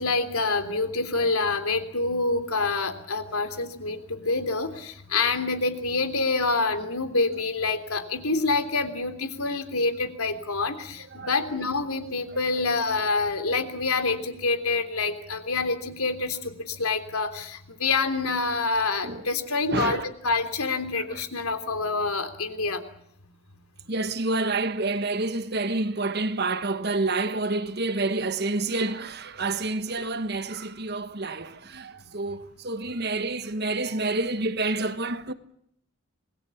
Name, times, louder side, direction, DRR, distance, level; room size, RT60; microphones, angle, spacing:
voice 1, 0.0-22.8, left 3 dB, 85° left, 3.3 m, -27 dB
voice 2, 19.7-20.1 23.9-35.3, right 3 dB, 45° right, 1.3 m, -28 dB
27.0 x 20.5 x 7.2 m
head